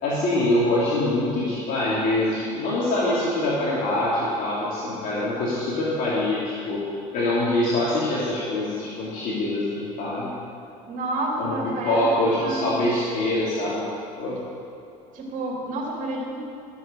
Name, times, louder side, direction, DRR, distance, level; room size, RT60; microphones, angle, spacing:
voice 1, 0.0-6.8 7.1-10.3 11.4-11.6 11.8-13.9 14.2-14.4, left 1 dB, 60° left, -7 dB, 2.8 m, -24 dB
voice 2, 10.9-12.8 15.1-16.4, right 1 dB, 55° right, -2 dB, 2.8 m, -29 dB
14.0 x 7.6 x 6.7 m, 2.7 s
supercardioid pair, 80°, 16 cm